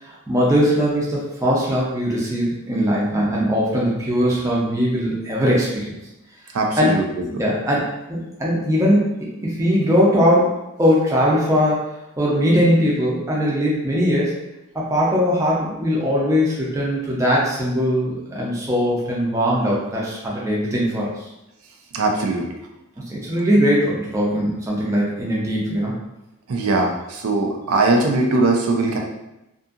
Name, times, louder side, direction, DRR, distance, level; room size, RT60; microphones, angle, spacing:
voice 1, 0.0-5.9 6.8-7.0 7.4-9.1 9.4-11.9 12.2-14.4 14.7-21.2 23.1-25.9, equal, 15° right, -5 dB, 0.5 m, -20 dB
voice 2, 6.5-7.2 21.9-22.5 26.5-29.0, right 2 dB, 85° right, 1 dB, 0.5 m, -20 dB
2.7 x 2.5 x 2.4 m, 0.93 s
head